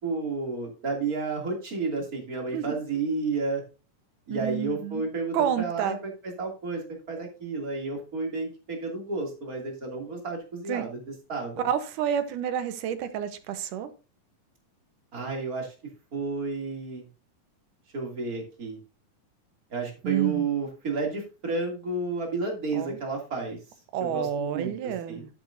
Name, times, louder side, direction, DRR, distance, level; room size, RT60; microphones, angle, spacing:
voice 1, 0.0-3.6 4.3-11.0 11.3-11.6 15.1-15.7 16.1-17.0 17.9-18.8 19.7-23.6 24.0-25.3, right 3 dB, 30° right, 0 dB, 2.8 m, -31 dB
voice 2, 4.3-5.0 5.3-6.0 10.7-10.9 11.6-13.9 20.0-20.5 22.7-23.0 23.9-25.3, right 9 dB, 75° right, 10 dB, 2.4 m, -29 dB
11.5 x 8.7 x 2.7 m, 0.32 s
omnidirectional pair, 3.8 m